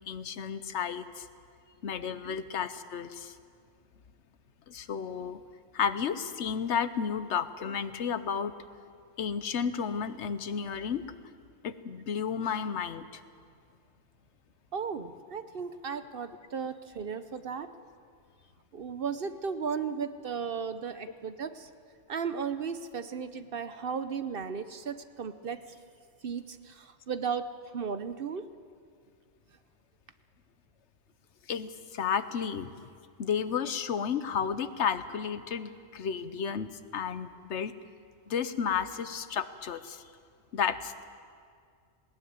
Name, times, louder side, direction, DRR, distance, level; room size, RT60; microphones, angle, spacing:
voice 1, 0.1-1.3 1.8-3.3 4.7-5.4 5.7-8.5 9.2-11.0 11.6-13.2 31.5-32.7 33.2-37.7 38.3-40.0 40.5-41.0, left 7 dB, 80° left, 12 dB, 1.2 m, -32 dB
voice 2, 14.7-17.7 18.7-21.7 22.1-25.6 26.2-27.4 27.7-28.4, right 6 dB, 55° right, 11 dB, 0.9 m, -35 dB
19.5 x 18.5 x 9.4 m, 2.2 s
omnidirectional pair, 1.2 m